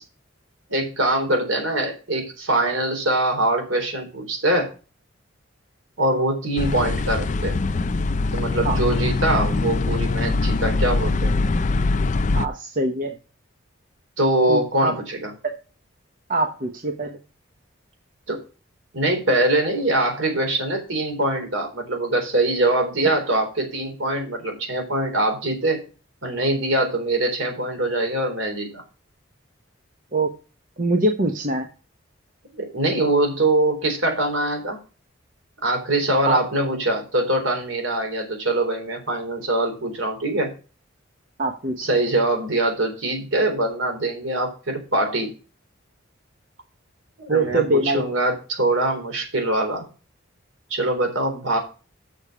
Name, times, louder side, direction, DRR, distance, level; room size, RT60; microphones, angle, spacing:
voice 1, 0.7-4.7 6.0-7.6 8.3-11.3 14.2-15.3 18.3-18.4 18.9-25.8 26.2-28.8 32.5-34.8 35.6-40.5 41.8-45.3 47.2-49.9 50.7-51.6, right 1 dB, 75° right, 3 dB, 3.8 m, -23 dB
sound 1, 6.6-12.5, left 3 dB, 40° left, 0.4 m, -22 dB
voice 2, 12.3-13.1 14.5-14.9 15.4-15.5 16.3-17.2 30.1-30.3 30.8-31.7 36.2-36.4 41.4-41.8 47.3-48.0, right 2 dB, 40° right, 5 dB, 1.0 m, -23 dB
6.8 x 6.4 x 7.2 m, 0.34 s
head